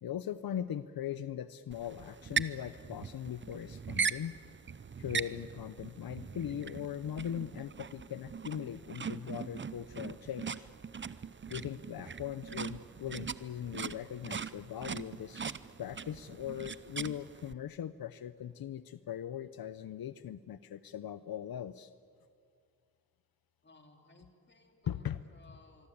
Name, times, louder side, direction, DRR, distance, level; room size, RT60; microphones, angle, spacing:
voice 1, 0.0-4.4 5.0-10.7 11.5-21.9 24.9-25.2, left 10 dB, 80° left, 14 dB, 0.7 m, -40 dB
sound 1, 1.7-17.5, right 6 dB, 35° right, 0.6 m, -40 dB
voice 2, 23.6-25.9, left 2 dB, 30° left, 3 dB, 3.7 m, -60 dB
25.5 x 23.0 x 8.7 m, 2.3 s
wide cardioid pair, 100°, 36 cm